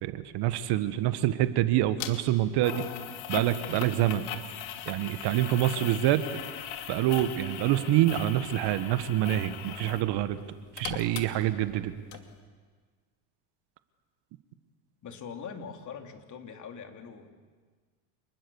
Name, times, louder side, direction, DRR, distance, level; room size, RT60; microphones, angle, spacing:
voice 1, 0.0-2.8 3.3-4.3 4.9-6.2 6.9-10.4 10.7-11.9, right 13 dB, 55° right, 11 dB, 1.6 m, -26 dB
sound 1, 2.0-2.1 2.6-10.1 10.4-11.8 12.1-12.2, left 10 dB, 60° left, 2.7 m, -39 dB
voice 2, 15.0-17.3, left 6 dB, 35° left, 4 dB, 3.2 m, -42 dB
28.0 x 20.0 x 7.2 m, 1.5 s
supercardioid pair, 100°, 48 cm